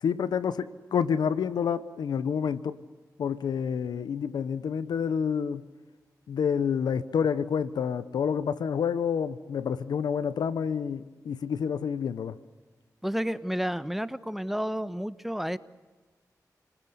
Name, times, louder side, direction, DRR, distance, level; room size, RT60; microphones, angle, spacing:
voice 1, 0.0-2.8 3.2-5.6 6.3-12.3, left 7 dB, 90° left, 14 dB, 0.9 m, -28 dB
voice 2, 13.0-15.6, equal, 5° right, 13 dB, 1.3 m, -31 dB
29.5 x 19.5 x 8.1 m, 1.3 s
cardioid pair, 45°, 7 cm